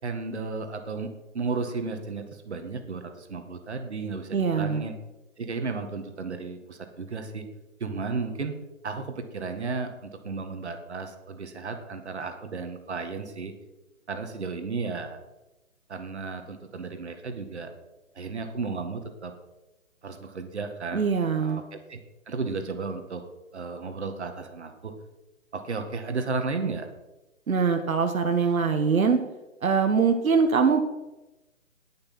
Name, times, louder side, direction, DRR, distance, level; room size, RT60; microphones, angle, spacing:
voice 1, 0.0-4.9 5.4-7.5 7.8-8.6 8.8-13.5 14.1-15.2 15.9-17.7 18.2-19.3 20.0-21.1 21.4-22.0 22.3-23.2 23.5-24.9 25.5-26.9, right 4 dB, 55° right, 7 dB, 2.0 m, -34 dB
voice 2, 4.3-4.8 20.9-21.6 27.5-29.2 29.6-30.8, right 5 dB, 85° right, 6 dB, 1.5 m, -23 dB
19.0 x 6.6 x 6.0 m, 1.0 s
hypercardioid pair, 180°, 40 cm